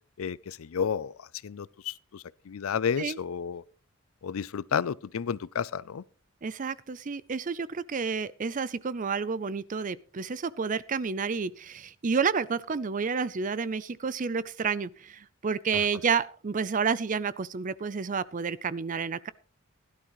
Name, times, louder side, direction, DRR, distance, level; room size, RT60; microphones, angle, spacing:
voice 1, 0.2-3.6 4.2-6.0, left 7 dB, 85° left, 0.5 m, -32 dB
voice 2, 6.4-19.3, right 5 dB, 40° right, 0.5 m, -30 dB
16.5 x 11.5 x 3.1 m
head